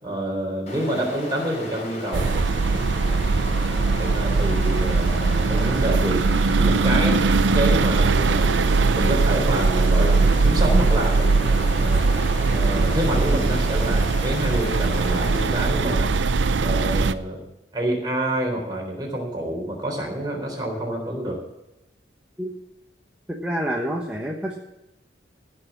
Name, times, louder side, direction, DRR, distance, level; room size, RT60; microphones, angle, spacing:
voice 1, 0.0-2.3 3.9-6.2 6.6-7.2 7.5-8.5 8.9-12.0 12.5-16.1 16.6-17.4 17.7-21.4, right 1 dB, 25° right, -1 dB, 3.8 m, -27 dB
Stream, 0.7-15.7, left 1 dB, 40° left, 3.4 m, -36 dB
sound 1, 2.1-17.1, right 3 dB, 85° right, 0.6 m, -20 dB
voice 2, 23.3-24.6, equal, 5° right, -1 dB, 1.2 m, -27 dB
16.0 x 6.2 x 7.3 m, 0.91 s
head